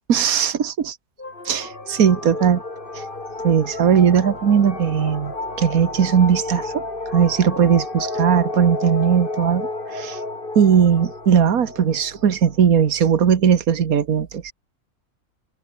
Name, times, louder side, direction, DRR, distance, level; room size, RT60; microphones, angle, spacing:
voice 1, 0.1-1.0 1.5-2.6 2.9-3.1 3.4-10.2 10.6-14.5, right 7 dB, 70° right, 1.9 m, -18 dB
sound 1, 1.2-13.0, left 2 dB, 35° left, 3.3 m, -32 dB
omnidirectional pair, 1.6 m